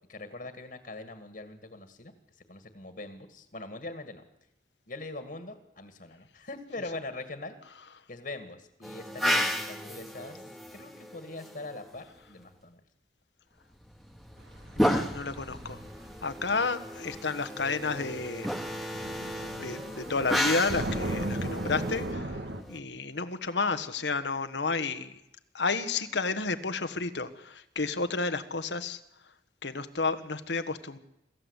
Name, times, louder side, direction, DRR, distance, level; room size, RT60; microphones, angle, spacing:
voice 1, 0.1-2.1 2.5-4.2 4.9-7.6 8.1-10.4 10.7-12.8, left 2 dB, 50° left, 8 dB, 2.0 m, -42 dB
sound 1, 8.8-12.0 13.8-22.8, equal, ahead, 1.5 m, -33 dB
voice 2, 14.8-15.8 16.2-18.5 19.6-22.4 22.7-25.2 25.5-29.0 29.6-31.0, left 4 dB, 85° left, 10 dB, 1.5 m, -31 dB
sound 2, 16.5-16.6 17.7-17.8 18.0-22.6, right 1 dB, 80° right, 2.2 m, -36 dB
25.5 x 14.5 x 8.2 m, 0.87 s
head